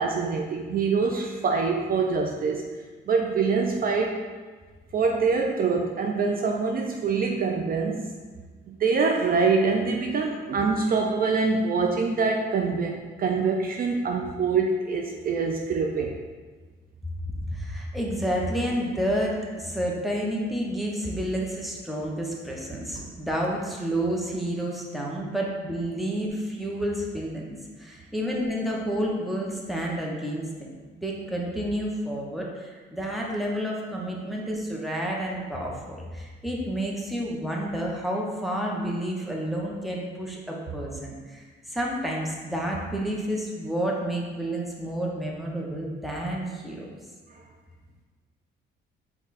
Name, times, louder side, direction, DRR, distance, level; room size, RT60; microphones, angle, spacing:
voice 1, 0.0-2.6 3.1-4.2 4.9-8.1 8.7-16.1, right 4 dB, 50° right, 2 dB, 0.4 m, -25 dB
voice 2, 17.4-30.7 30.9-46.9, equal, ahead, -2 dB, 0.9 m, -30 dB
5.2 x 2.3 x 4.0 m, 1.4 s
cardioid pair, 90°, 20 cm